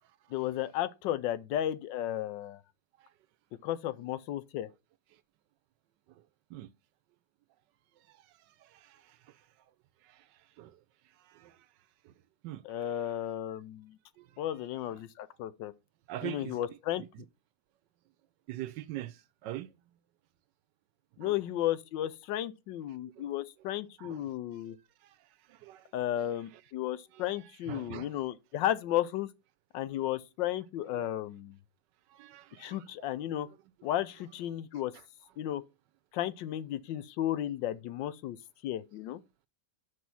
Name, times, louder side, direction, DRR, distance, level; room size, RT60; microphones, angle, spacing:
voice 1, 0.3-2.6 3.6-4.7 12.6-14.0 14.4-15.7 16.2-17.0 21.2-24.8 25.9-29.3 29.7-31.6 32.6-33.5 33.8-34.9 35.4-35.6 36.1-38.4 38.6-39.2, left 12 dB, 80° left, 1.3 m, -34 dB
voice 2, 8.6-9.4 10.0-10.3 10.6-10.8 11.2-11.6 12.0-12.1 12.4-12.6 14.2-14.4 16.1-16.6 18.5-19.7 21.2-21.4 23.2-23.3 24.0-24.2 25.0-25.2 25.5-25.9 27.1-27.2 27.7-28.1 30.9-31.1 32.1-33.2, right 14 dB, 75° right, 1.2 m, -43 dB
6.2 x 5.5 x 5.9 m
omnidirectional pair, 2.0 m